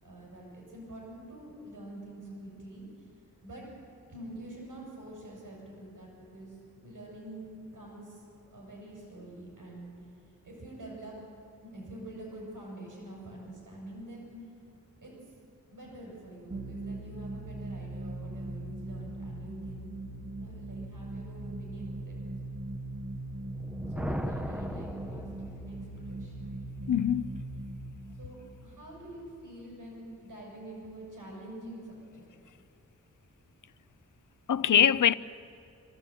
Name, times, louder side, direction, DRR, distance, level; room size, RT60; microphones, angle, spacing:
voice 1, 0.0-3.1 3.4-3.7 4.1-8.2 8.5-9.9 10.4-11.2 11.6-14.4 15.0-15.1 15.7-20.0 20.4-22.3 23.9-25.8 26.1-26.5 28.2-32.3, right 1 dB, 80° right, 7.1 m, -46 dB
sound 1, 16.5-29.8, right 2 dB, 50° right, 1.7 m, -40 dB
Thunder, 23.4-26.0, equal, 5° right, 1.1 m, -37 dB
voice 2, 26.9-27.4 34.5-35.1, left 9 dB, 70° left, 0.6 m, -23 dB
26.0 x 14.5 x 8.7 m
wide cardioid pair, 95°, 32 cm